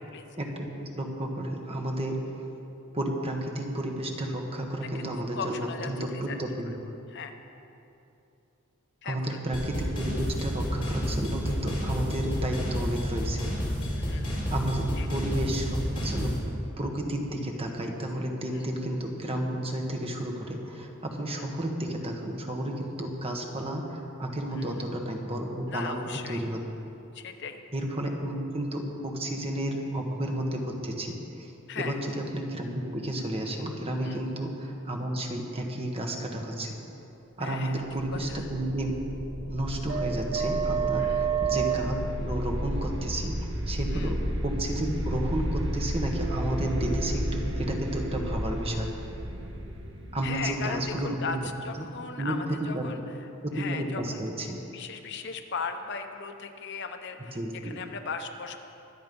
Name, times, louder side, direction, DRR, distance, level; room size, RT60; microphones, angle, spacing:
voice 1, 0.4-2.5 2.9-6.7 9.0-13.5 14.5-26.0 26.3-26.6 27.7-36.7 37.4-38.9 39.5-43.4 43.7-48.9 50.1-51.4 51.8-51.9 52.2-52.9 53.4-54.6 57.3-57.7, right 1 dB, 30° right, 1 dB, 1.5 m, -32 dB
voice 2, 4.8-6.4 7.1-7.3 9.0-9.4 13.9-14.3 15.0-15.1 18.5-18.7 21.3-21.5 24.5-24.8 25.7-26.4 27.1-27.6 31.7-32.0 34.0-34.2 37.4-37.8 38.1-38.4 41.0-41.3 43.9-44.1 50.2-53.0 53.5-54.2 54.7-58.6, left 5 dB, 55° left, 6 dB, 0.8 m, -37 dB
sound 1, 9.5-16.4, equal, 25° left, 3.7 m, -30 dB
sound 2, 37.9-51.5, right 2 dB, 60° right, 1.6 m, -31 dB
23.5 x 8.0 x 5.4 m, 2.8 s
head